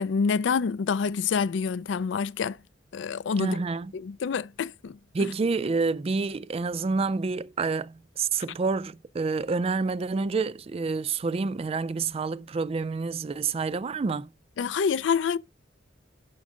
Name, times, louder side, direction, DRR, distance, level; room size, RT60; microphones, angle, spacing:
voice 1, 0.0-2.6 2.9-3.6 3.9-5.3 14.6-15.4, left 5 dB, 80° left, 0.4 m, -27 dB
voice 2, 3.4-3.9 5.1-14.3, right 4 dB, 30° right, 0.3 m, -28 dB
6.3 x 6.2 x 3.7 m
head